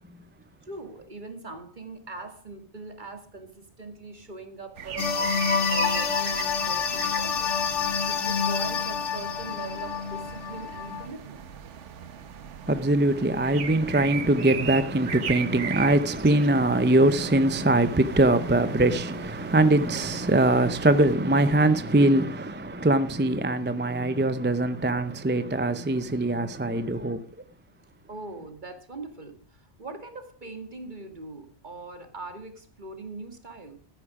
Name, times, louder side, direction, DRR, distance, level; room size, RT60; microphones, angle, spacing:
voice 1, 0.6-11.5 28.1-33.8, right 3 dB, 40° right, 2.1 m, -42 dB
sound 1, 4.7-21.1, right 8 dB, 85° right, 1.3 m, -39 dB
sound 2, 5.0-11.1, left 6 dB, 85° left, 1.5 m, -27 dB
voice 2, 12.6-27.2, right 2 dB, 15° right, 0.5 m, -22 dB
13.5 x 10.0 x 4.9 m
omnidirectional pair, 1.2 m